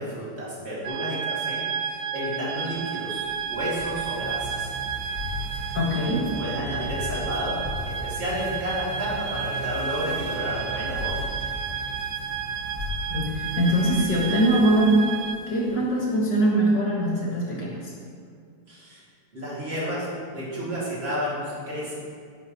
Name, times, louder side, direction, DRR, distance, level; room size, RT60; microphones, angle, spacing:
voice 1, 0.0-1.6 2.1-4.7 6.4-11.2 18.7-19.0 19.3-22.0, equal, 35° right, -7 dB, 2.7 m, -31 dB
sound 1, 0.8-15.4, right 7 dB, 85° right, 1.3 m, -32 dB
sound 2, 2.4-15.8, left 1 dB, 10° left, 1.5 m, -37 dB
voice 2, 5.7-6.2 13.1-15.1 15.5-17.9, right 1 dB, 65° left, -4 dB, 2.5 m, -22 dB
10.5 x 10.0 x 3.1 m, 2.2 s
omnidirectional pair, 2.0 m